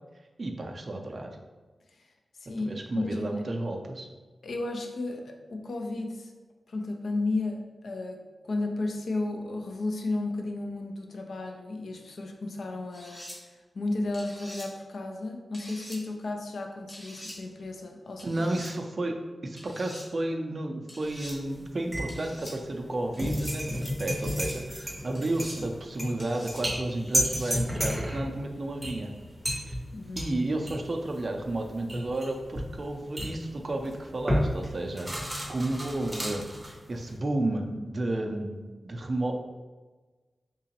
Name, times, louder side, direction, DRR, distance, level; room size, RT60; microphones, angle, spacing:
voice 1, 0.4-1.3 2.6-4.1 18.2-19.2 19.4-29.1 29.5-29.7 30.2-39.4, right 2 dB, 40° right, 3 dB, 0.4 m, -32 dB
voice 2, 2.5-3.3 4.4-6.3 6.7-13.5 13.7-18.3 29.9-30.3, left 2 dB, 70° left, 3 dB, 0.4 m, -33 dB
sound 1, 12.9-13.4 14.1-14.7 15.5-16.0 16.9-17.4 18.2-18.7 19.6-20.1 20.9-21.4 22.1-22.5 23.1-23.5 24.1-24.6 25.1-25.6 26.2-26.6 27.1-27.6, equal, 30° left, 1.1 m, -45 dB
sound 2, 21.0-21.6 21.9-37.2, equal, 5° right, 0.7 m, -32 dB
3.7 x 3.0 x 2.9 m, 1.3 s
wide cardioid pair, 155°, 0 cm